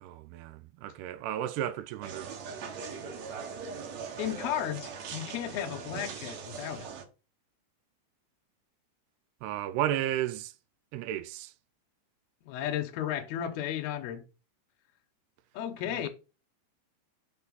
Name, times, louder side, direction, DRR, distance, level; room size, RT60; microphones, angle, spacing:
voice 1, 0.0-2.3 9.4-10.5 10.9-11.5 16.0-16.1, right 12 dB, 85° right, 2.6 m, -33 dB
sound 1, 2.0-7.1, right 6 dB, 65° right, 1.8 m, -40 dB
voice 2, 4.2-6.9 12.5-14.2 15.5-16.1, left 10 dB, 80° left, 2.6 m, -34 dB
6.0 x 4.3 x 5.5 m
omnidirectional pair, 4.6 m